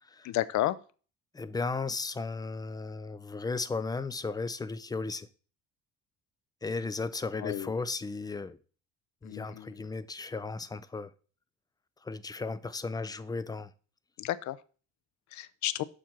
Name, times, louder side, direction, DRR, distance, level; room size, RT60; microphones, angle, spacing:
voice 1, 0.2-0.8 7.4-7.7 9.2-9.7 14.2-14.6 15.3-15.8, left 14 dB, 65° left, 0.6 m, -32 dB
voice 2, 1.3-5.3 6.6-8.6 9.2-11.1 12.0-13.7, left 3 dB, 15° left, 0.4 m, -35 dB
7.4 x 4.4 x 6.0 m
cardioid pair, 140°, 31 cm